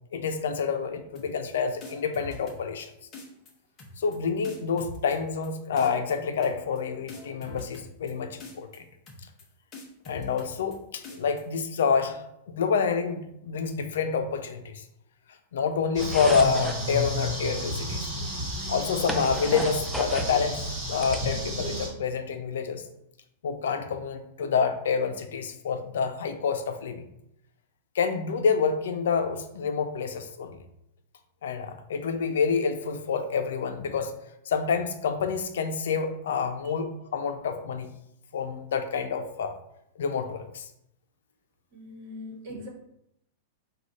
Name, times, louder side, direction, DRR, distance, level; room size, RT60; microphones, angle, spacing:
voice 1, 0.1-2.9 4.0-8.9 10.1-14.8 15.5-18.1 18.7-22.8 23.4-27.1 27.9-30.5 31.4-34.1 34.5-37.9 38.3-39.5 40.0-40.6, left 5 dB, 90° left, 7 dB, 0.5 m, -28 dB
sound 1, 1.1-1.5 1.8-2.8 3.1-3.5 3.8-4.2 4.4-5.5 5.8-6.1 6.4-6.8 7.1-8.1 8.4-8.8 9.1-9.4 9.7-10.8 11.0-11.4, left 2 dB, 20° left, 0.7 m, -43 dB
sound 2, 15.9-21.9, equal, 20° right, 1.3 m, -32 dB
sound 3, 16.0-16.8 18.0-18.1 18.5-20.4 20.8-21.8, right 1 dB, ahead, 0.3 m, -35 dB
voice 2, 41.7-42.7, left 1 dB, 40° right, 0 dB, 1.2 m, -40 dB
4.9 x 2.4 x 4.0 m, 0.79 s
supercardioid pair, 175°, 0 cm